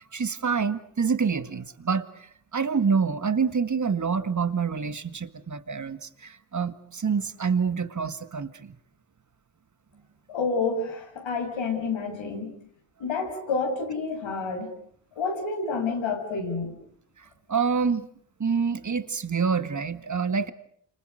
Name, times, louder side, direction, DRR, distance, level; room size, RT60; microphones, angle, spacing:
voice 1, 0.0-2.1 2.5-8.8 17.5-18.1 18.4-20.5, right 5 dB, 40° right, 12 dB, 2.0 m, -27 dB
voice 2, 10.3-12.5 13.0-14.7 15.2-16.8, left 4 dB, 80° left, 3 dB, 6.7 m, -29 dB
29.5 x 26.5 x 6.5 m, 0.62 s
cardioid pair, 60°, 46 cm